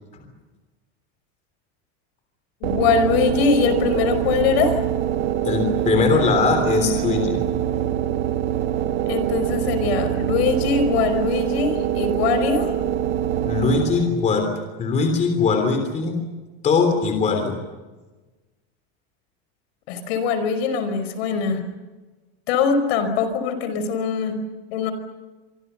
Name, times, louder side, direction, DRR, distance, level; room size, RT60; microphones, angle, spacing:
voice 1, 2.6-4.8 9.1-12.7 19.9-21.7 22.5-24.4 24.7-24.9, left 5 dB, 65° left, 9 dB, 5.2 m, -22 dB
sound 1, 2.6-14.3, right 11 dB, 55° right, 1.5 m, -24 dB
voice 2, 5.4-7.4 13.4-14.5 14.8-16.2 16.6-17.6, left 5 dB, 20° left, 5 dB, 3.4 m, -21 dB
25.5 x 25.5 x 7.0 m, 1.2 s
supercardioid pair, 180°, 34 cm